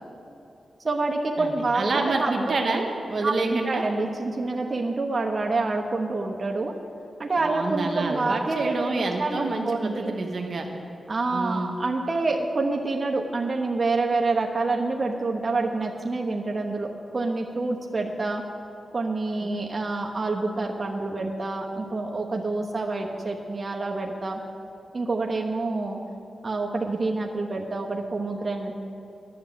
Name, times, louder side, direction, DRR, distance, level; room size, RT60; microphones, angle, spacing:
voice 1, 0.8-1.8 2.2-2.3 3.2-6.7 7.2-10.1 11.1-18.4 18.9-24.4 24.9-26.0 26.4-28.7, right 3 dB, 40° right, 0 dB, 1.1 m, -27 dB
voice 2, 1.4-3.8 7.4-10.7 11.3-11.7 19.4-19.5, right 3 dB, 65° right, 2 dB, 1.2 m, -28 dB
11.0 x 7.1 x 9.1 m, 2.8 s
cardioid pair, 60°, 0 cm